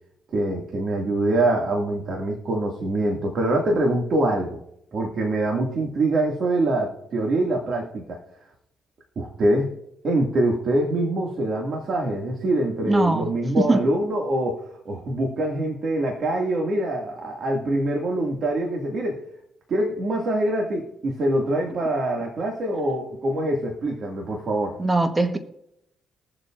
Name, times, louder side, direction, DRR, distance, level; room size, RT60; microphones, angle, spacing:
voice 1, 0.3-4.6 4.9-8.2 9.2-9.7 10.0-19.2 19.7-24.8, right 1 dB, 55° right, 0 dB, 2.1 m, -24 dB
voice 2, 12.8-13.3 13.6-13.9 24.8-25.4, right 2 dB, 15° right, 7 dB, 1.2 m, -21 dB
22.0 x 7.4 x 2.5 m, 0.80 s
cardioid pair, 90°, 0 cm